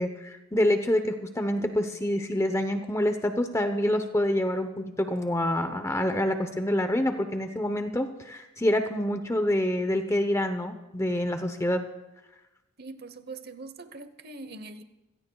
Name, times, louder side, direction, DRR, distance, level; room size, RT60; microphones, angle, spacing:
voice 1, 0.0-11.8, left 1 dB, 15° left, 7 dB, 0.8 m, -27 dB
voice 2, 12.8-14.8, right 3 dB, 45° right, 11 dB, 0.9 m, -42 dB
27.0 x 17.0 x 2.3 m, 1.0 s
head